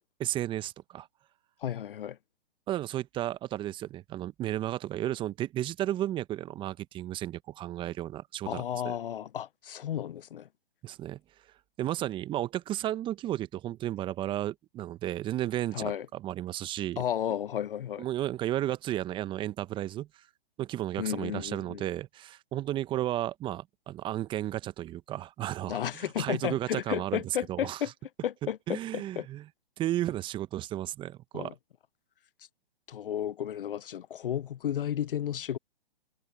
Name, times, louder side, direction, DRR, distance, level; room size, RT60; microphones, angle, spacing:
voice 1, 0.2-1.1 2.7-9.0 10.8-11.2 11.8-17.0 18.0-20.2 20.6-27.8 28.7-29.4 29.8-31.5, right 13 dB, 15° right, 0.9 m, -33 dB
voice 2, 1.6-2.2 8.5-10.5 15.7-16.1 17.0-18.1 21.0-21.9 25.7-27.9 28.2-29.3 31.3-31.5 32.9-35.6, left 10 dB, 65° left, 0.6 m, -33 dB
hypercardioid pair, 130°, 29 cm